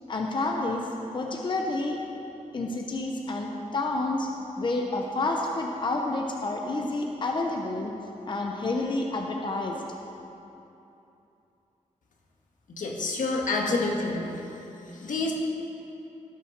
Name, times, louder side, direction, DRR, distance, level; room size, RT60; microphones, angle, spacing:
voice 1, 0.1-0.9 1.1-2.0 2.5-4.3 4.6-7.9 8.2-9.8, left 2 dB, 35° left, 1 dB, 0.8 m, -29 dB
voice 2, 12.7-14.4 14.9-15.3, left 3 dB, 85° left, 0 dB, 1.7 m, -28 dB
16.0 x 6.2 x 6.5 m, 2.9 s
wide cardioid pair, 165°, 13 cm